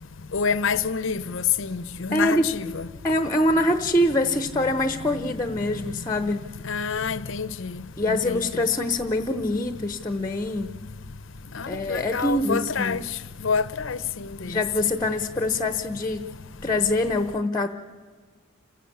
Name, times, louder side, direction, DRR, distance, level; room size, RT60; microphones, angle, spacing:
voice 1, 0.3-2.8 5.9-6.1 6.6-8.4 11.5-14.6, left 6 dB, 65° left, 0.7 m, -28 dB
voice 2, 2.1-2.5 3.0-6.4 8.0-10.7 11.7-13.0 14.5-16.2 16.6-17.7, left 1 dB, 15° left, 0.8 m, -24 dB
28.5 x 15.0 x 8.6 m
head